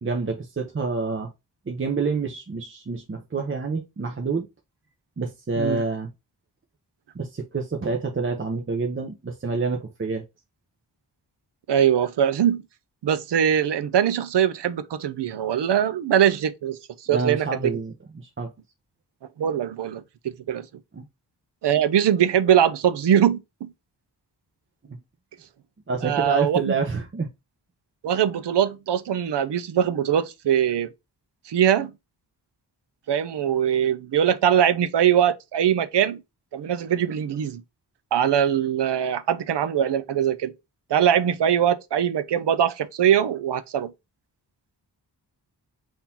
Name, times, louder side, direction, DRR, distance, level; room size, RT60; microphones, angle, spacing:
voice 1, 0.0-1.3 1.7-4.5 5.2-6.1 7.1-10.2 17.1-18.5 20.9-21.1 24.9-25.0 25.9-27.3, right 4 dB, 30° right, 0.7 m, -28 dB
voice 2, 11.7-12.6 13.0-16.8 17.1-17.8 19.4-20.7 21.6-23.7 26.0-26.6 28.0-30.9 31.5-31.9 33.1-36.2 36.5-37.6 38.1-40.5 40.9-43.9, right 9 dB, 80° right, 0.6 m, -22 dB
3.8 x 2.7 x 4.2 m
wide cardioid pair, 100°, 41 cm